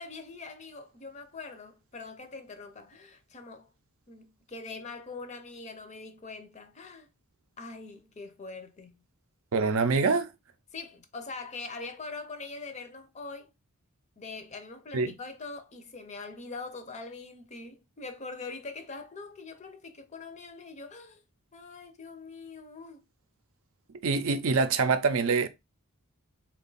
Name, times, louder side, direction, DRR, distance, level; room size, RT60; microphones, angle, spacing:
voice 1, 0.0-3.7 4.1-7.1 7.6-8.9 10.7-13.5 14.2-21.2 21.5-23.0, left 3 dB, 30° left, 0.5 m, -43 dB
voice 2, 9.5-10.3 14.9-15.1 24.0-25.5, right 4 dB, 65° right, 0.4 m, -25 dB
3.4 x 2.3 x 3.8 m
head